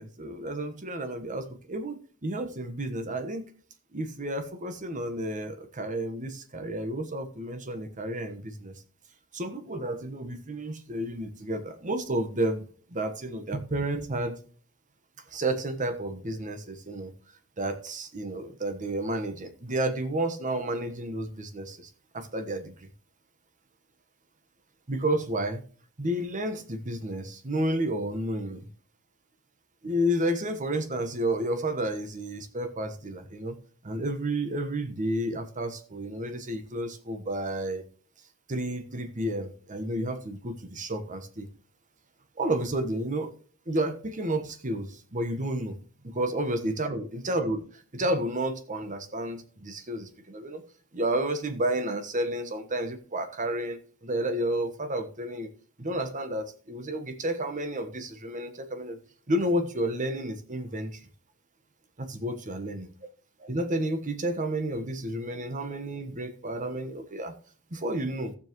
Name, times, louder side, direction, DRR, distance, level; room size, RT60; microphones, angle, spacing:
voice 1, 0.0-3.5 3.9-8.8 9.3-12.6 12.9-14.3 15.3-17.1 17.6-22.9 24.9-25.6 26.0-28.7 29.8-33.6 33.8-37.8 38.5-41.5 42.4-43.3 43.7-45.8 46.0-50.6 50.9-55.5 55.8-59.0 59.3-61.0 62.0-62.9 63.4-67.3 67.7-68.4, right 1 dB, 40° right, 9 dB, 1.2 m, -31 dB
15.5 x 7.2 x 3.0 m, 0.42 s
head